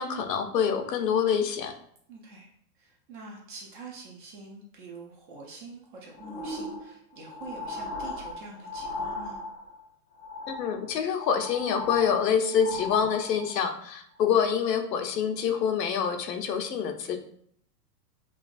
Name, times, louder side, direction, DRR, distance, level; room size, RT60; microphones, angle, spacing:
voice 1, 0.0-1.7 10.5-17.2, left 7 dB, 90° left, 6 dB, 0.8 m, -26 dB
voice 2, 2.1-9.4, right 3 dB, 35° right, -1 dB, 0.6 m, -45 dB
sound 1, 6.1-9.8 10.2-10.9 11.2-13.6 14.2-14.3, left 2 dB, 35° left, 0.6 m, -37 dB
5.6 x 2.4 x 2.5 m, 0.65 s
supercardioid pair, 155°, 47 cm